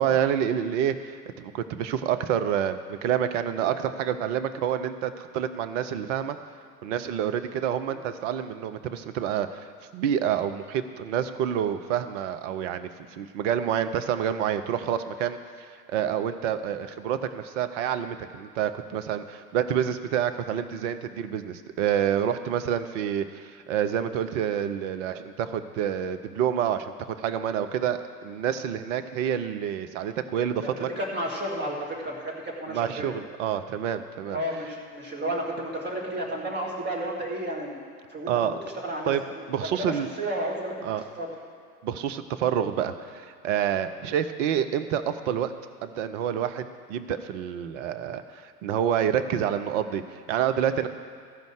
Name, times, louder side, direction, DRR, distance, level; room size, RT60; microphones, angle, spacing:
voice 1, 0.0-6.4 6.8-9.7 9.9-15.4 15.9-30.9 32.7-34.4 38.3-38.5 39.1-39.2 39.5-40.1 40.8-41.0 41.8-45.5 45.8-50.9, right 9 dB, 50° right, 10 dB, 0.7 m, -28 dB
voice 2, 30.6-33.1 34.3-37.8 38.1-38.6 38.8-39.1 39.7-40.8 41.2-41.3, right 1 dB, 20° right, -1 dB, 2.2 m, -32 dB
15.0 x 5.2 x 6.4 m, 2.1 s
figure-of-eight pair, 90°, 47 cm